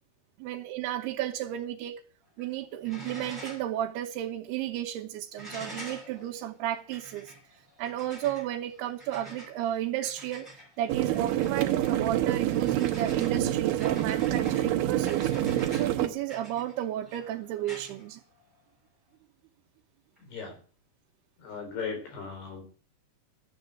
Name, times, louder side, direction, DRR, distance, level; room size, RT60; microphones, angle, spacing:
voice 1, 0.4-2.0 2.4-7.3 7.8-10.5 10.8-15.3 15.7-18.2, right 12 dB, 85° right, 2.8 m, -33 dB
sound 1, 2.2-2.5 2.8-3.8 4.1-4.2 5.4-18.7 20.2-20.3, right 1 dB, ahead, 5.7 m, -47 dB
sound 2, 10.9-16.1, right 12 dB, 70° right, 2.5 m, -27 dB
voice 2, 20.2-20.6 21.4-22.6, left 5 dB, 85° left, 6.0 m, -37 dB
12.5 x 8.0 x 7.8 m
omnidirectional pair, 4.5 m